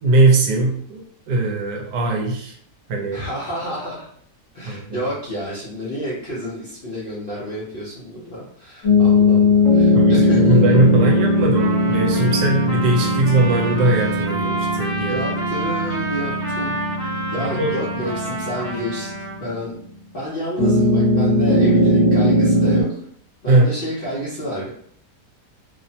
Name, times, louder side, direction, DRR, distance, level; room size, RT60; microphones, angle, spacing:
voice 1, 0.0-1.0 1.3-2.5 2.9-3.2 4.7-5.0 9.9-15.2 17.4-17.7 23.5-23.7, right 2 dB, 75° right, 1 dB, 1.2 m, -19 dB
voice 2, 3.1-4.1 4.5-10.6 15.1-19.1 19.4-19.8 20.1-23.0 23.4-24.7, equal, 65° left, -8 dB, 0.5 m, -29 dB
sound 1, 8.8-19.5 20.6-22.8, left 2 dB, 45° left, 1.2 m, -19 dB
Trumpet, 11.0-19.4, right 2 dB, 35° right, 0.3 m, -30 dB
2.9 x 2.0 x 2.6 m, 0.62 s
omnidirectional pair, 1.9 m